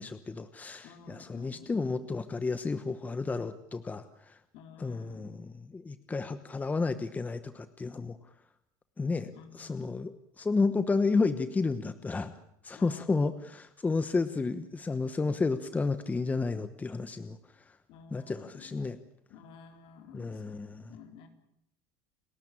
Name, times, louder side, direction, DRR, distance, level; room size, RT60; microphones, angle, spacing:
voice 1, 0.0-4.4 4.8-8.2 9.0-12.3 12.6-17.4 18.1-19.0 20.1-21.0, left 4 dB, 15° left, 11 dB, 1.1 m, -31 dB
voice 2, 0.8-2.1 4.5-5.3 9.3-9.9 12.8-13.2 17.9-18.7 19.3-21.3, left 5 dB, 65° left, 5 dB, 4.1 m, -52 dB
30.0 x 13.0 x 8.9 m, 0.76 s
supercardioid pair, 120°, 10 cm